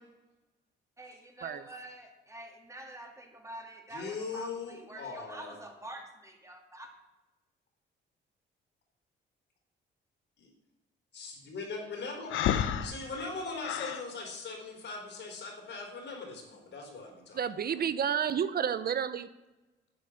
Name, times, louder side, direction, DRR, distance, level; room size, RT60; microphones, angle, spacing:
voice 1, 1.0-6.9, right 1 dB, 15° right, 2 dB, 2.6 m, -47 dB
voice 2, 3.9-5.6 10.4-10.5 11.1-12.4 12.8-17.4, left 4 dB, 60° left, 2 dB, 4.1 m, -40 dB
Breathing, 12.3-14.0, left 9 dB, 80° left, 1.0 m, -31 dB
voice 3, 17.3-19.3, right 8 dB, 50° right, 13 dB, 0.7 m, -30 dB
11.5 x 8.4 x 6.5 m, 1.1 s
cardioid pair, 90°, 20 cm